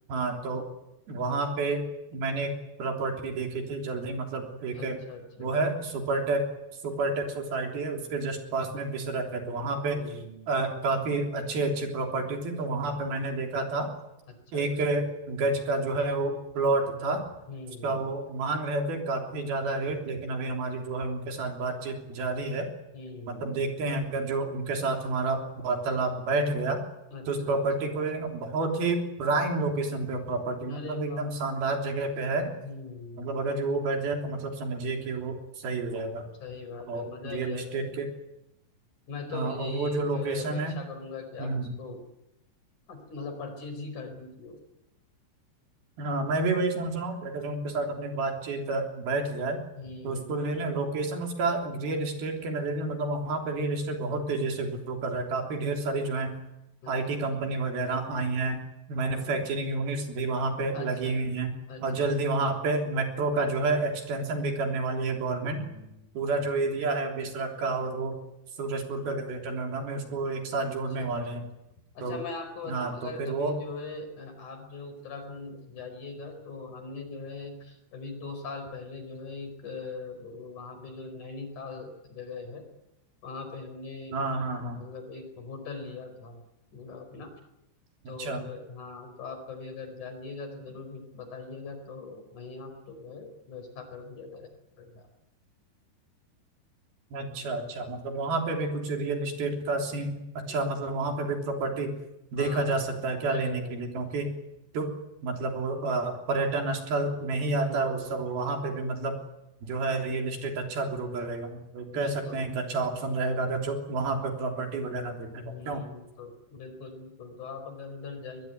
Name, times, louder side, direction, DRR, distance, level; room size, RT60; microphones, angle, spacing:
voice 1, 0.1-0.7 1.1-1.9 2.1-2.5 2.8-5.0 5.4-6.5 6.8-10.1 10.5-13.9 14.5-17.2 17.8-22.7 23.3-26.8 27.3-32.6 33.2-36.3 36.9-38.1 39.3-40.8 41.4-41.7 46.0-49.6 50.0-56.3 56.9-58.6 58.9-61.5 61.8-65.6 66.2-68.2 68.6-71.4 72.0-72.2 72.6-73.6 84.1-84.8 88.2-88.4 97.1-100.2 100.5-102.0 102.3-104.3 104.7-104.9 105.2-109.2 109.6-115.8, right 3 dB, 70° right, 3 dB, 5.2 m, -30 dB
voice 2, 4.7-5.6 9.9-10.5 14.3-15.0 17.5-18.1 22.9-23.6 27.1-28.0 30.7-31.3 32.6-33.4 36.4-38.1 39.1-42.0 42.9-44.6 49.8-50.4 56.8-57.3 59.1-59.5 60.7-61.2 61.7-62.3 65.2-66.0 70.6-71.5 71.9-82.6 83.2-86.4 86.7-87.3 88.1-94.5 94.8-95.1 100.5-100.6 102.4-102.9 103.3-103.8 107.5-108.0 111.9-112.4 115.4-118.5, left 4 dB, 50° left, 7 dB, 6.1 m, -41 dB
23.5 x 21.0 x 9.6 m, 0.89 s
omnidirectional pair, 4.6 m